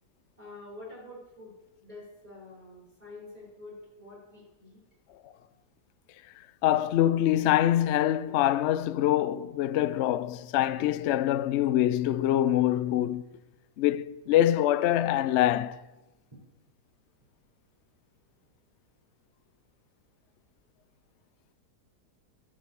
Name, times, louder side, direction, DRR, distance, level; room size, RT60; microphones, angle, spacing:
voice 1, 0.4-1.5 1.8-4.8, left 2 dB, 20° right, 4.6 m, -47 dB
voice 2, 6.6-13.2 13.8-15.8, left 12 dB, 90° left, 0.6 m, -25 dB
13.0 x 6.7 x 7.1 m
omnidirectional pair, 1.7 m